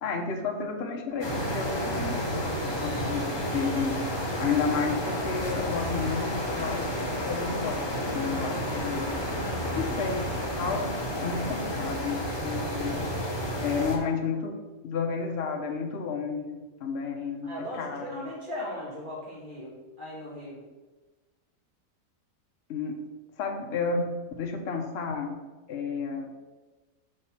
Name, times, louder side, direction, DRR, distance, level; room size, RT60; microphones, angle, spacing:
voice 1, 0.0-4.1 4.4-9.2 9.8-10.3 10.6-13.0 13.6-14.6 14.8-18.3 22.7-23.0 23.4-25.4 25.7-26.3, left 5 dB, 50° left, 2 dB, 1.0 m, -32 dB
sound 1, 1.2-14.0, equal, 20° left, 1.0 m, -31 dB
voice 2, 9.4-9.8 13.7-13.8 17.4-19.7 20.0-20.6, left 1 dB, 30° right, -6 dB, 2.9 m, -38 dB
6.4 x 5.7 x 4.3 m, 1.2 s
omnidirectional pair, 1.8 m